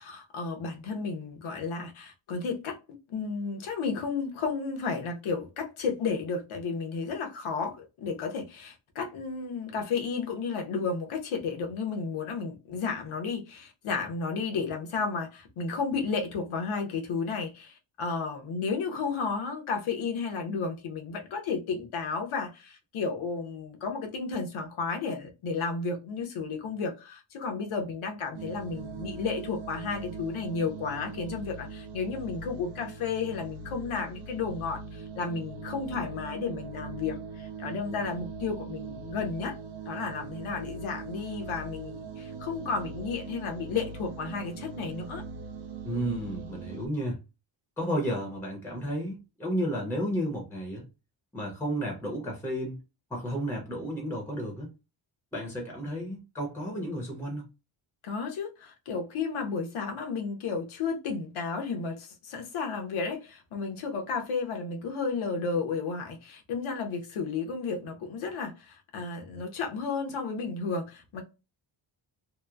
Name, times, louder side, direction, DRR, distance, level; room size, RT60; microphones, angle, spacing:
voice 1, 0.0-2.8 3.1-39.6 39.9-45.2 58.0-71.2, left 4 dB, 80° left, 0.9 m, -33 dB
sound 1, 28.3-46.9, right 4 dB, 60° right, 0.6 m, -41 dB
voice 2, 45.8-47.2 47.8-50.8 51.3-52.8 53.1-54.7 55.3-57.5, equal, 5° left, 0.6 m, -32 dB
2.9 x 2.0 x 2.2 m
wide cardioid pair, 165°, 48 cm